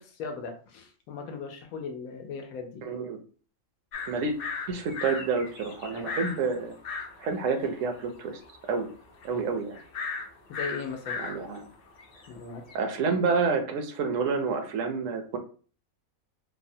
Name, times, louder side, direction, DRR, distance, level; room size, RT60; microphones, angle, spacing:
voice 1, 0.0-2.8 5.9-6.1 9.3-9.5 10.5-11.2 12.3-12.6, left 5 dB, 85° left, 5 dB, 1.0 m, -38 dB
voice 2, 2.8-3.2 4.1-4.3 4.7-6.7 7.2-8.4 8.7-8.9 9.2-9.8 11.2-11.7 12.7-15.4, right 4 dB, 70° right, 5 dB, 0.9 m, -28 dB
sound 1, 3.9-12.8, left 5 dB, 60° left, 0.6 m, -38 dB
3.2 x 2.0 x 2.6 m, 0.41 s
omnidirectional pair, 1.4 m